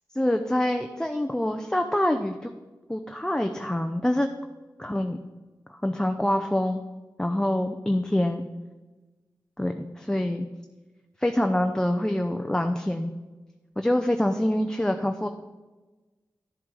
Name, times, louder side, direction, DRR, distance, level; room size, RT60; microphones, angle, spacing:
voice 1, 0.1-2.5 2.9-4.3 4.8-5.2 5.7-6.8 7.2-8.4 9.6-10.5 11.2-13.1 13.8-15.3, left 1 dB, 10° left, 5 dB, 0.6 m, -25 dB
12.0 x 7.3 x 4.8 m, 1.2 s
wide cardioid pair, 85°, 8 cm